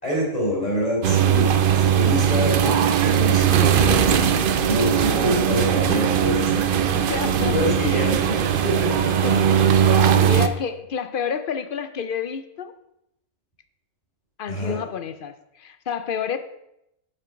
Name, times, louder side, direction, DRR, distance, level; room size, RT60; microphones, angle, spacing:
voice 1, 0.0-4.2 4.6-7.0 7.4-8.4 8.6-8.9 14.5-14.8, equal, 30° left, -4 dB, 4.0 m, -26 dB
sound 1, 1.0-10.5, right 8 dB, 55° right, 0.6 m, -19 dB
voice 2, 6.9-7.5 7.8-8.1 9.1-12.7 14.4-16.4, left 7 dB, 55° left, 10 dB, 0.6 m, -30 dB
7.6 x 7.5 x 5.1 m, 0.83 s
omnidirectional pair, 1.4 m